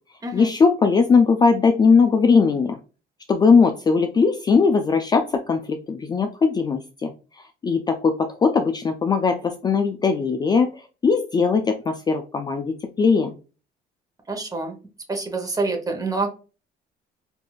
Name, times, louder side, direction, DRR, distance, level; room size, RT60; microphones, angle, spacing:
voice 1, 0.3-2.8 3.3-7.1 7.6-10.7 11.0-13.3, left 5 dB, 25° left, 6 dB, 0.3 m, -19 dB
voice 2, 14.3-14.8 15.1-16.3, right 3 dB, 20° right, 4 dB, 1.0 m, -26 dB
4.6 x 2.6 x 2.4 m, 0.34 s
cardioid pair, 110°, 17 cm